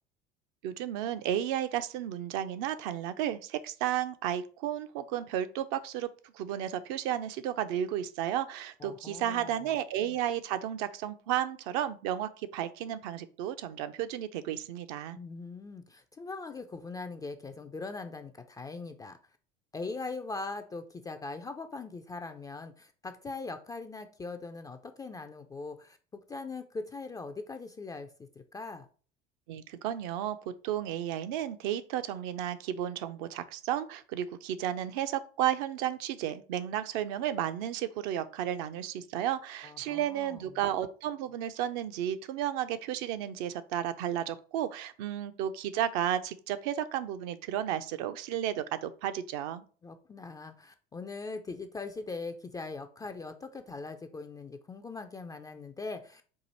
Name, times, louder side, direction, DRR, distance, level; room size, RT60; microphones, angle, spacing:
voice 1, 0.6-6.1 6.3-15.2 29.5-30.4 30.6-49.6, right 11 dB, 50° right, 10 dB, 0.5 m, -33 dB
voice 2, 8.8-9.7 15.1-19.2 19.7-28.1 28.4-28.9 39.6-40.5 49.8-56.2, left 3 dB, 15° left, 7 dB, 0.3 m, -41 dB
4.7 x 2.5 x 4.1 m, 0.40 s
figure-of-eight pair, 65°, 31 cm